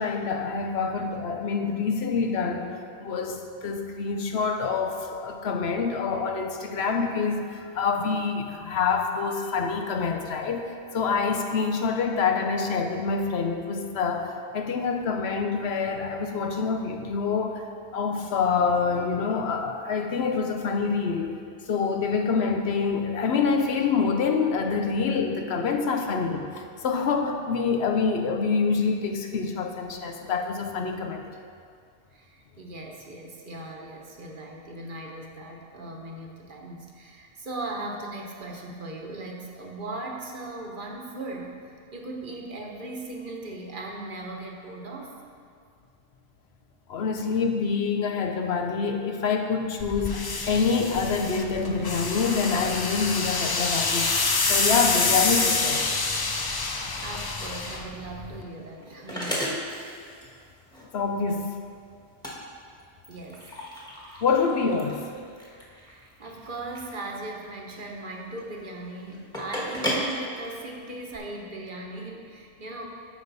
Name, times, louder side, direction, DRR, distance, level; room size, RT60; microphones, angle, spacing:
voice 1, 0.0-2.7 3.0-10.7 10.9-17.6 17.9-21.4 21.7-31.2 46.9-54.1 54.5-55.9 60.8-61.5 64.2-65.0, left 5 dB, 85° left, 4 dB, 1.0 m, -26 dB
voice 2, 32.1-41.6 41.9-45.1 56.4-59.5 63.1-63.5 65.7-72.9, right 2 dB, 55° right, 0 dB, 1.2 m, -38 dB
sound 1, 49.8-58.4, left 3 dB, 35° left, 0.4 m, -27 dB
sound 2, 58.3-71.2, equal, 5° left, 1.4 m, -36 dB
13.5 x 5.1 x 4.0 m, 2.2 s
omnidirectional pair, 1.1 m